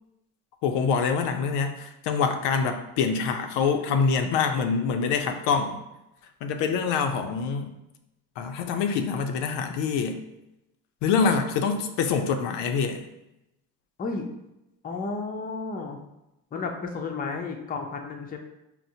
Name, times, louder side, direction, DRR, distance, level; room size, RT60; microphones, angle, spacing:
voice 1, 0.6-5.8 6.4-7.7 8.4-10.2 11.0-13.0, left 5 dB, 75° left, 5 dB, 0.5 m, -25 dB
voice 2, 14.8-16.0 16.5-18.4, left 4 dB, 20° left, 3 dB, 0.4 m, -32 dB
4.2 x 2.0 x 2.6 m, 0.90 s
supercardioid pair, 70°, 43 cm